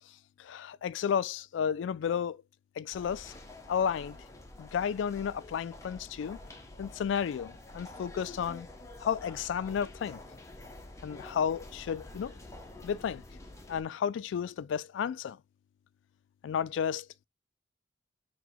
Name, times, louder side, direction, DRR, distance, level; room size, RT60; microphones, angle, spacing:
voice 1, 0.4-2.4 2.8-3.3 3.7-4.2 4.6-6.4 6.8-8.7 9.0-10.2 11.0-12.3 12.8-13.2 13.7-15.4 16.4-17.1, left 7 dB, 75° left, 0.3 m, -32 dB
sound 1, 2.9-13.8, left 2 dB, 15° left, 0.6 m, -48 dB
4.7 x 2.2 x 3.9 m
head